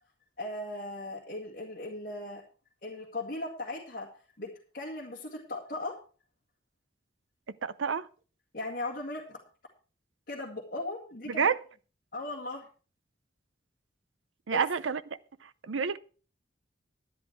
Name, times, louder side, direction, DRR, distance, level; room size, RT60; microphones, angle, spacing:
voice 1, 0.4-2.4 2.8-4.1 4.4-4.5 4.7-6.0 8.5-9.4 10.3-11.5 12.1-12.6 14.5-14.6, left 2 dB, 50° left, 2.0 m, -37 dB
voice 2, 7.5-8.1 11.3-11.6 14.5-15.0 15.4-16.0, right 6 dB, 90° right, 0.6 m, -29 dB
11.5 x 10.5 x 4.6 m
head